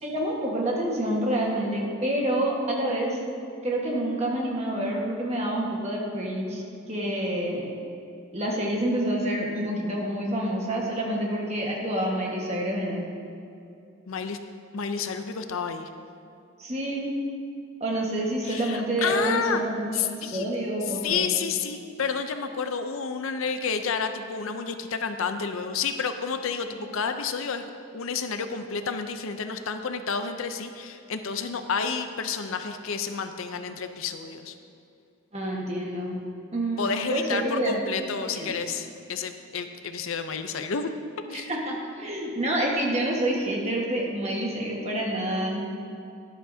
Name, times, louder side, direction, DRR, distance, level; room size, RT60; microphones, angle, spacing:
voice 1, 0.0-3.2 3.6-7.7 8.3-13.1 16.6-17.1 17.8-21.3 35.3-36.2 36.5-37.8 38.3-38.6 41.3-45.6, right 1 dB, 30° right, -2 dB, 1.4 m, -28 dB
voice 2, 14.1-14.4 14.7-15.9 18.4-19.6 19.9-20.5 21.0-34.5 36.8-40.9 41.3-41.5, left 5 dB, 70° left, 8 dB, 0.6 m, -30 dB
12.5 x 11.0 x 2.7 m, 2.5 s
head